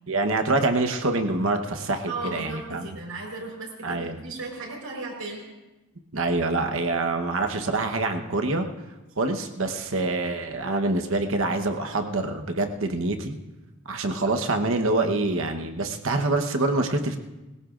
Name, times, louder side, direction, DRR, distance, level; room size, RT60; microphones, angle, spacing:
voice 1, 0.1-2.9 3.8-4.2 6.1-8.7 9.2-13.4 13.9-17.2, right 2 dB, 65° right, 5 dB, 1.1 m, -25 dB
voice 2, 2.1-5.5, right 2 dB, 90° right, 0 dB, 4.4 m, -35 dB
21.0 x 16.5 x 2.5 m, 1.1 s
head